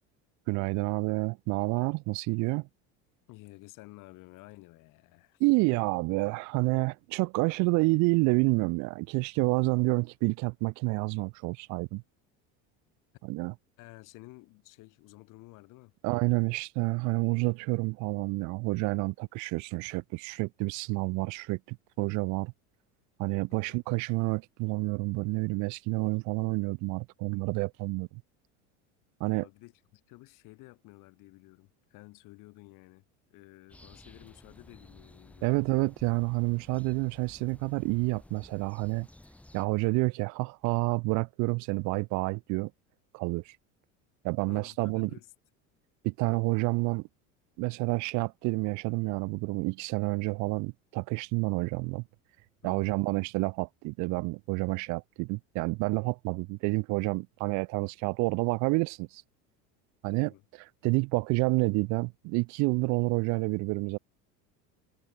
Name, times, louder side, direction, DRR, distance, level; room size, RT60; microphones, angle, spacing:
voice 1, 0.5-2.7 5.4-12.0 13.2-13.5 16.0-22.5 23.2-28.1 29.2-29.5 35.4-39.1 39.5-42.7 43.1-43.5 44.2-45.1 46.0-47.1 47.6-52.0 52.6-59.2 60.0-60.3 60.8-64.0, right 27 dB, 55° right, 0.5 m, -29 dB
voice 2, 3.3-5.4 13.8-15.9 23.5-23.8 29.4-33.0 33.3-35.6 44.5-45.3 52.6-53.0 60.2-60.4, left 21 dB, 60° left, 5.1 m, -52 dB
sound 1, 33.7-39.7, left 1 dB, 5° left, 1.6 m, -54 dB
supercardioid pair, 130°, 35 cm